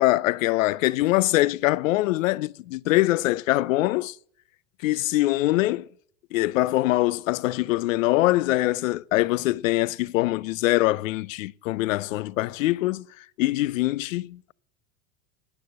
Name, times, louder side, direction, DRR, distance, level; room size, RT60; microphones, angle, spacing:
voice 1, 0.0-4.1 4.8-5.9 6.3-13.1 13.4-14.5, left 18 dB, 80° left, 0.7 m, -23 dB
17.0 x 9.9 x 7.5 m
supercardioid pair, 110°, 39 cm